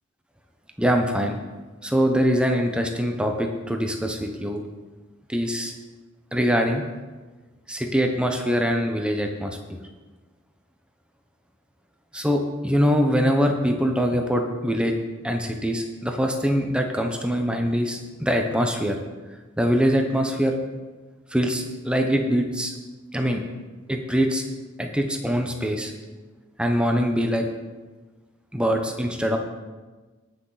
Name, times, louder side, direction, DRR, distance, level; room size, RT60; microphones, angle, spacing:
voice 1, 0.8-1.4 1.8-4.6 5.3-5.7 6.3-6.8 7.7-9.6 12.1-15.0 15.2-19.0 19.6-20.5 21.3-22.7 23.1-23.4 23.9-24.4 24.8-25.9 26.6-27.5 28.5-29.4, equal, 5° right, 3 dB, 0.9 m, -23 dB
18.0 x 6.2 x 4.1 m, 1.3 s
head